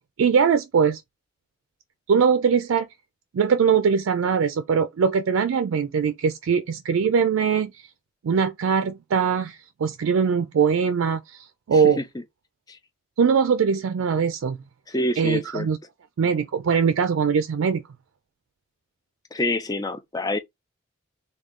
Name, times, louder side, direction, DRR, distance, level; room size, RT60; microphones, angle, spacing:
voice 1, 0.2-1.0 2.1-2.9 3.3-7.8 8.2-12.0 13.2-14.6 15.2-15.8 16.2-17.8, right 6 dB, 85° right, 0.4 m, -21 dB
voice 2, 11.7-12.0 12.7-12.8 14.9-15.7 19.3-20.4, left 1 dB, 20° left, 0.4 m, -27 dB
3.6 x 2.3 x 3.5 m
head